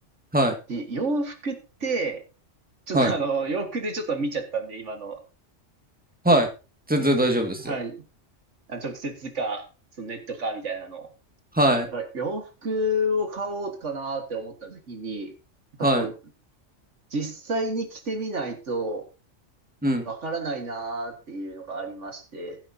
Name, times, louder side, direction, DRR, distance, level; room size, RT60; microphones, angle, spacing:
voice 1, 0.7-2.2 2.9-5.2 7.7-8.0 8.7-9.6 10.0-11.1 11.9-15.3 15.8-16.1 17.1-19.1 20.1-22.6, right 2 dB, 75° right, 6 dB, 2.1 m, -30 dB
voice 2, 6.9-7.7 11.5-11.9 15.8-16.1 19.8-20.1, right 1 dB, 5° right, 4 dB, 2.1 m, -21 dB
15.5 x 10.5 x 2.8 m, 0.31 s
omnidirectional pair, 1.3 m